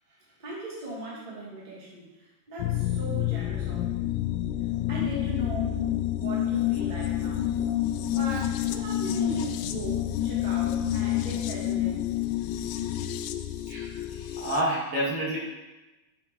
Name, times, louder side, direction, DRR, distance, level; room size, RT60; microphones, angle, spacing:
voice 1, 0.4-2.1 2.5-4.1 4.9-5.8 6.2-7.4 8.1-12.0, right 1 dB, 20° right, -8 dB, 1.3 m, -38 dB
sound 1, 2.6-14.6, left 12 dB, 85° left, 2.6 m, -28 dB
voice 2, 13.7-15.4, right 1 dB, 60° right, -6 dB, 2.9 m, -29 dB
9.6 x 8.5 x 3.1 m, 1.1 s
omnidirectional pair, 5.8 m